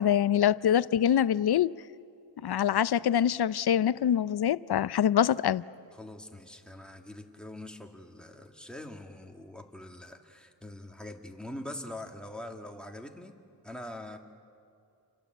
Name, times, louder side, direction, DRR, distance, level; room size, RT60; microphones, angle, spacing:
voice 1, 0.0-1.7 2.4-5.6, left 9 dB, 60° left, 0.6 m, -25 dB
voice 2, 5.9-13.4 13.6-14.2, left 1 dB, ahead, 2.1 m, -43 dB
29.5 x 25.0 x 8.0 m
wide cardioid pair, 120°, 44 cm